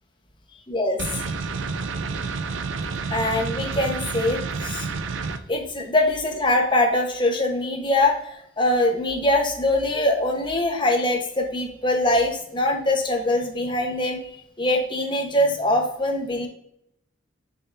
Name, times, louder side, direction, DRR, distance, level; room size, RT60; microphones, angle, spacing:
voice 1, 0.7-1.3 3.1-4.9 5.5-14.2 14.6-16.5, left 1 dB, 25° left, 2 dB, 1.0 m, -23 dB
sound 1, 1.0-5.4, right 4 dB, 75° right, 0.5 m, -29 dB
6.8 x 5.7 x 2.6 m, 0.73 s
head